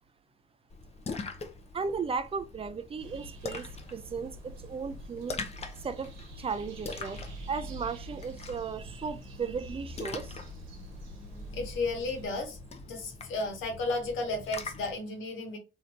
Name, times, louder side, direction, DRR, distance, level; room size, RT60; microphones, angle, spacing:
Splash splatter, 0.7-15.0, left 3 dB, 30° left, 0.6 m, -43 dB
voice 1, 1.7-5.4 5.8-10.4, right 5 dB, 30° right, 0.4 m, -36 dB
sound 1, 3.0-12.3, right 1 dB, 85° right, 1.0 m, -48 dB
voice 2, 11.5-12.6 12.9-15.6, left 2 dB, 85° left, 1.2 m, -33 dB
3.2 x 2.8 x 2.5 m
cardioid pair, 90°, 20 cm